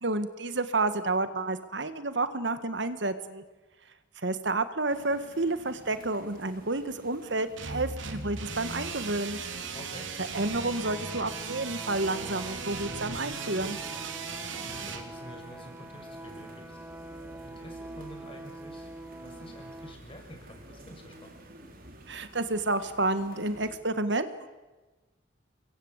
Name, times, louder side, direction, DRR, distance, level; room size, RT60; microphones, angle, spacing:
voice 1, 0.0-3.4 4.2-9.4 10.2-13.8 22.1-24.5, right 2 dB, 65° right, 11 dB, 1.6 m, -30 dB
sound 1, 4.9-23.8, right 1 dB, 50° right, 4.0 m, -51 dB
sound 2, 7.6-15.0, right 5 dB, 85° right, 3.3 m, -38 dB
voice 2, 9.7-10.1 14.3-16.8 17.4-18.9 19.2-21.4, equal, 30° left, 3 dB, 6.2 m, -48 dB
sound 3, 10.3-19.9, right 1 dB, 10° right, 1.9 m, -44 dB
29.0 x 23.5 x 8.2 m, 1.2 s
head